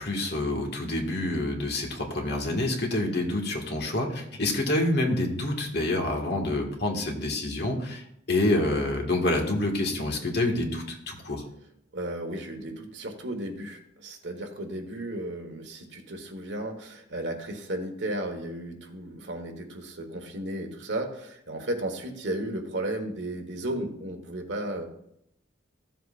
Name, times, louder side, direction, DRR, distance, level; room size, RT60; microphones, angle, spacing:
voice 1, 0.0-11.4, left 1 dB, 60° left, 1 dB, 1.8 m, -27 dB
voice 2, 11.9-24.9, right 1 dB, 70° right, 4 dB, 1.5 m, -34 dB
14.5 x 7.6 x 2.5 m, 0.73 s
head